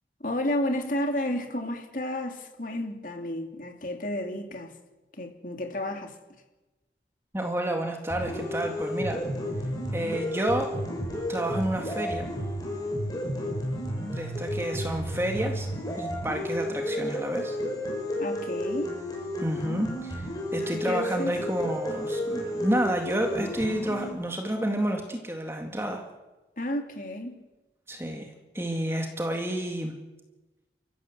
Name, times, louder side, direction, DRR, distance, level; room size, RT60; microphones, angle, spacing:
voice 1, 0.2-4.7 5.1-6.2 18.2-18.9 20.7-21.3 26.6-27.4, left 1 dB, 45° left, 4 dB, 3.0 m, -31 dB
voice 2, 7.3-9.2 9.9-10.7 11.3-12.3 14.1-15.7 16.0-17.6 19.4-26.0 27.9-30.0, right 1 dB, 15° right, 3 dB, 2.1 m, -30 dB
sound 1, 8.1-24.1, left 1 dB, 20° left, 6.7 m, -32 dB
29.5 x 15.0 x 7.9 m, 1.1 s
head